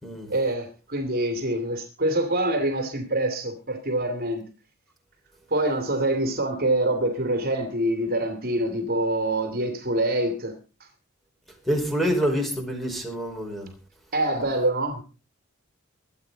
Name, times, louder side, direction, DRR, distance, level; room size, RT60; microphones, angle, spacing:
voice 1, 0.3-4.4 5.5-10.5 14.1-15.0, right 1 dB, 45° right, 2.7 m, -25 dB
voice 2, 11.6-13.7, equal, ahead, 4.8 m, -26 dB
23.5 x 8.8 x 4.0 m
head